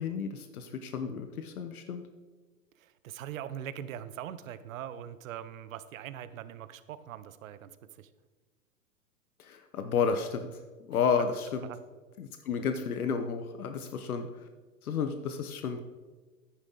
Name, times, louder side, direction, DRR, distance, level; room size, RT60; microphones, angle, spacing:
voice 1, 0.0-2.0 9.4-10.5 10.8-11.6 12.2-14.3 14.8-15.8, left 6 dB, 85° left, 7 dB, 1.0 m, -31 dB
voice 2, 2.8-7.7 8.0-8.1 11.6-11.8, right 10 dB, 65° right, 14 dB, 0.9 m, -41 dB
10.5 x 9.8 x 3.9 m, 1.3 s
hypercardioid pair, 130°, 42 cm